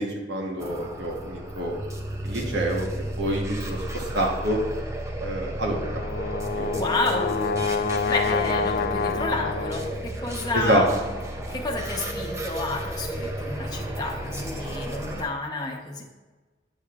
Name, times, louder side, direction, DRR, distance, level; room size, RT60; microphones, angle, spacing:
voice 1, 0.0-1.8 2.2-2.9 3.1-4.6 5.2-5.9 6.5-6.9 9.1-9.2 10.5-10.8, right 1 dB, 70° right, -1 dB, 1.2 m, -27 dB
sound 1, 0.6-15.2, right 1 dB, 15° right, 0.5 m, -33 dB
Brass instrument, 5.7-10.0, left 5 dB, 50° left, 0.4 m, -27 dB
voice 2, 6.7-7.6 8.1-11.0 11.5-16.0, left 2 dB, 20° left, -2 dB, 0.9 m, -30 dB
9.0 x 6.5 x 2.5 m, 1.2 s
head